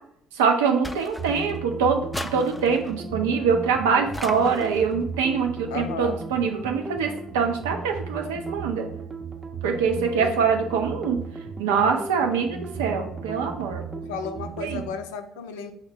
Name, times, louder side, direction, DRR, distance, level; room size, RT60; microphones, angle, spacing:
voice 1, 0.3-2.0 2.3-8.9 9.6-11.2 11.6-13.8 14.6-14.8, right 6 dB, 80° right, 3 dB, 0.5 m, -24 dB
sound 1, 0.8-1.6 2.1-3.0 4.1-4.9, left 1 dB, 10° left, 0.3 m, -36 dB
sound 2, 1.2-14.9, right 5 dB, 35° right, 0.6 m, -36 dB
voice 2, 5.7-6.2 10.2-10.4 13.9-15.7, left 5 dB, 80° left, 8 dB, 0.4 m, -34 dB
4.9 x 2.1 x 3.3 m, 0.68 s
hypercardioid pair, 55°, 0 cm